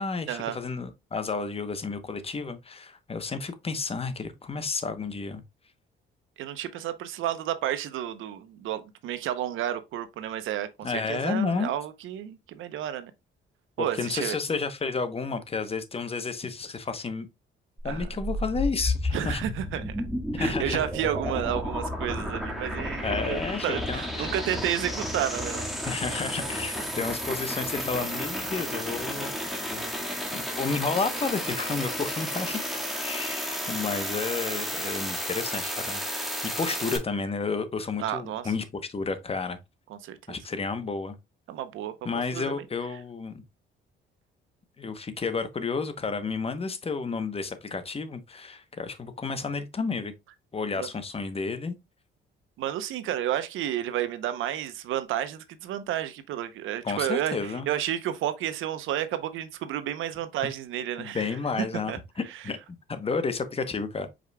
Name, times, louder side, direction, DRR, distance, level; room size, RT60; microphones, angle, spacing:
voice 1, 0.0-5.4 10.8-11.7 13.8-17.3 17.8-19.4 20.3-20.8 23.0-24.3 25.8-29.4 29.7-29.9 30.3-32.6 32.9-36.0 36.4-39.6 40.3-41.1 42.0-43.4 44.8-50.1 50.5-51.8 56.8-57.7 61.0-62.6 62.9-64.1, left 4 dB, 30° left, 0.8 m, -31 dB
voice 2, 6.4-13.1 13.8-14.4 17.8-18.1 19.1-20.1 20.4-25.7 38.0-38.5 39.9-40.4 41.5-41.9 42.3-42.5 50.7-50.9 52.6-61.3 61.6-62.0, right 11 dB, 80° right, 0.7 m, -31 dB
sound 1, 17.8-37.0, equal, ahead, 1.7 m, -32 dB
5.0 x 4.8 x 2.2 m
cardioid pair, 90°, 20 cm